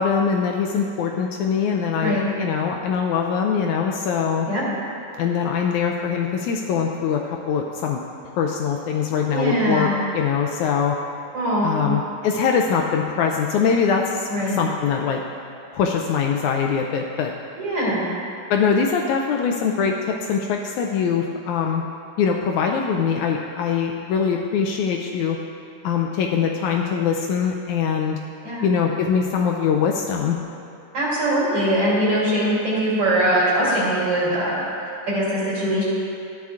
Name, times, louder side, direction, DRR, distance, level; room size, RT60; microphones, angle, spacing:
voice 1, 0.0-4.5 5.1-8.0 8.4-11.0 11.6-15.2 15.7-17.3 18.5-21.8 22.2-25.4 25.8-28.2 28.6-30.4, left 6 dB, 80° left, 1 dB, 1.8 m, -22 dB
voice 2, 2.0-2.3 4.5-4.7 9.3-9.9 11.3-11.9 14.3-14.6 17.6-18.1 28.4-28.7 30.9-34.6 35.1-35.8, right 1 dB, 50° right, -8 dB, 3.5 m, -22 dB
13.5 x 10.5 x 2.4 m, 2.6 s
omnidirectional pair, 3.7 m